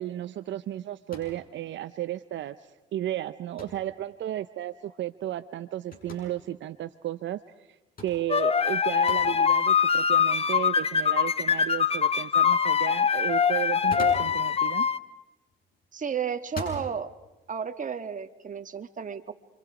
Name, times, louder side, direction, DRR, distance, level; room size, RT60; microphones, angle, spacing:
voice 1, 0.0-7.8 8.0-14.9, right 13 dB, 70° right, 11 dB, 0.7 m, -34 dB
sound 1, 1.1-1.4 3.6-3.9 5.9-6.3 8.0-8.2 9.1-9.3 10.3-10.4 13.7-14.4 15.5-15.8 16.4-16.8, left 2 dB, 45° left, 7.7 m, -40 dB
sound 2, 8.3-15.0, left 7 dB, 30° left, 0.8 m, -23 dB
voice 2, 15.9-17.1 17.5-19.3, right 7 dB, 40° right, 8 dB, 1.5 m, -32 dB
29.5 x 25.5 x 5.0 m, 1.1 s
cardioid pair, 90°, 20 cm